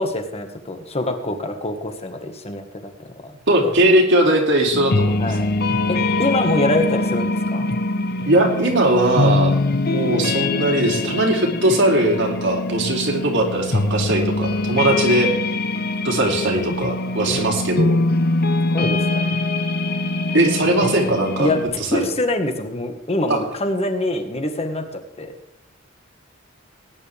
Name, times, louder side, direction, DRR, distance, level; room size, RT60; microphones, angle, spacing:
voice 1, 0.0-2.6 3.0-3.1 5.2-5.5 5.9-7.7 17.3-17.4 18.7-19.3 20.8-20.9 21.4-24.8 25.2-25.3, left 1 dB, 30° left, 6 dB, 1.6 m, -24 dB
voice 2, 3.5-5.3 8.3-9.6 9.9-15.3 16.0-18.0 20.3-21.5 21.8-22.1 23.3-23.4, right 1 dB, 65° right, 1 dB, 2.8 m, -19 dB
sound 1, 4.7-21.7, left 2 dB, 50° left, 0.9 m, -23 dB
19.0 x 9.9 x 3.5 m, 0.79 s
head